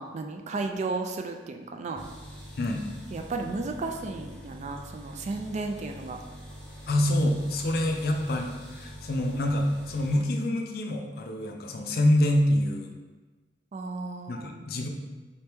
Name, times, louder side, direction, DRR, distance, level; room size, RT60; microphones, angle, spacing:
voice 1, 0.0-2.0 3.1-6.2 13.7-14.7, right 3 dB, 40° right, 3 dB, 0.3 m, -34 dB
sound 1, 2.0-10.2, equal, 5° left, 1.1 m, -45 dB
voice 2, 6.9-12.9 14.3-14.9, left 1 dB, 60° left, 3 dB, 0.5 m, -26 dB
4.3 x 2.9 x 3.4 m, 1.3 s
head